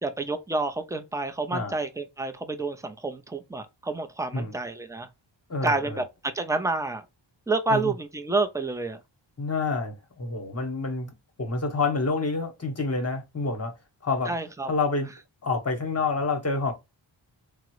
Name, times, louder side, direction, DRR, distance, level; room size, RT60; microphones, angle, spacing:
voice 1, 0.0-5.1 5.6-7.0 7.5-9.0 14.3-14.7, right 3 dB, 5° right, 0.4 m, -29 dB
voice 2, 5.5-6.0 7.7-7.9 9.4-11.1 11.4-13.8 14.0-14.3 14.7-15.1 15.4-16.7, left 3 dB, 30° left, 0.9 m, -28 dB
3.6 x 2.0 x 2.9 m
wide cardioid pair, 105°, 47 cm